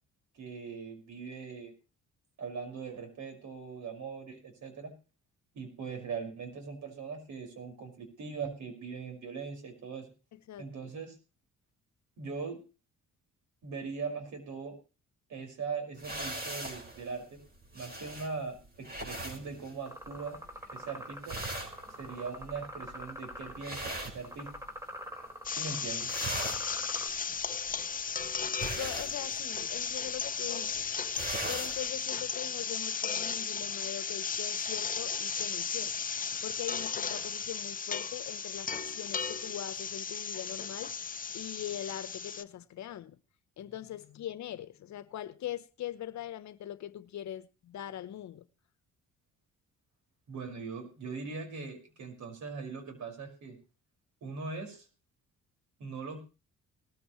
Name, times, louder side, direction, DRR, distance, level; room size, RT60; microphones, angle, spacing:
voice 1, 0.3-1.7 2.4-4.9 5.5-10.1 10.6-11.2 12.2-12.6 13.6-14.8 15.3-17.4 17.7-20.4 20.7-21.4 22.0-24.5 25.6-26.1 50.3-53.6 54.2-54.9 55.8-56.2, right 5 dB, 70° right, 5.5 m, -40 dB
voice 2, 10.3-10.9 28.6-30.9 31.5-35.9 36.4-40.9 41.3-43.2 43.6-48.5, left 11 dB, 65° left, 1.0 m, -41 dB
sound 1, 16.0-24.9 25.2-25.7 25.9-31.9, right 2 dB, 30° right, 5.1 m, -41 dB
sound 2, 19.9-27.1, equal, 10° right, 3.4 m, -45 dB
sound 3, 25.4-42.4, left 6 dB, 30° left, 0.7 m, -35 dB
19.0 x 14.0 x 3.2 m
cardioid pair, 90°, 30 cm